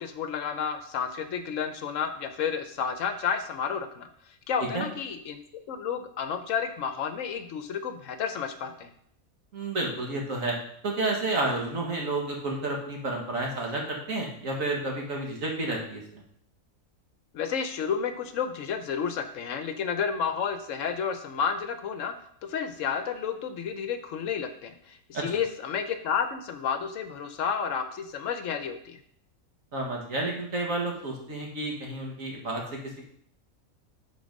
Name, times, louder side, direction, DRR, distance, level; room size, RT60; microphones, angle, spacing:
voice 1, 0.0-4.1 4.5-5.4 5.7-8.9 17.3-22.1 22.4-29.0, left 7 dB, 65° left, 9 dB, 0.9 m, -31 dB
voice 2, 9.5-10.6 10.8-16.2 25.1-25.2 29.7-33.0, right 2 dB, 65° right, -1 dB, 2.0 m, -31 dB
8.6 x 4.0 x 5.2 m, 0.67 s
omnidirectional pair, 1.5 m